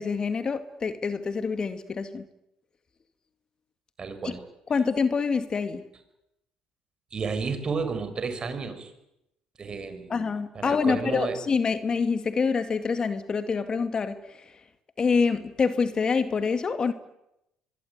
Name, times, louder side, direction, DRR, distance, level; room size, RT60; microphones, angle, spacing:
voice 1, 0.0-2.3 4.2-4.3 4.7-5.8 10.1-14.5 15.0-16.9, left 5 dB, 35° left, 10 dB, 2.1 m, -26 dB
voice 2, 4.0-4.4 7.1-8.9 9.6-10.2 10.5-11.4, right 5 dB, 40° right, 9 dB, 6.1 m, -31 dB
25.0 x 21.5 x 9.6 m, 0.85 s
supercardioid pair, 75°, 2 cm